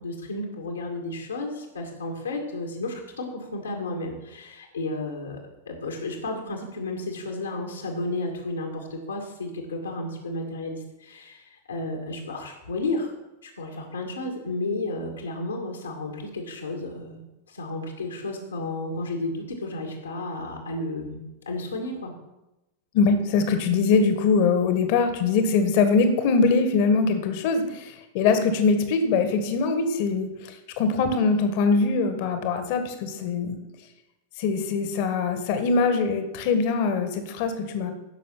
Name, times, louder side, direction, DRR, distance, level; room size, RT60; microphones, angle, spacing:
voice 1, 0.0-5.4 5.7-13.1 13.4-17.2 17.5-22.1, left 2 dB, 75° left, 0 dB, 2.2 m, -32 dB
voice 2, 22.9-33.6 34.4-37.9, left 4 dB, 50° left, 8 dB, 1.6 m, -22 dB
15.5 x 6.3 x 6.1 m, 0.97 s
figure-of-eight pair, 90°, 0 cm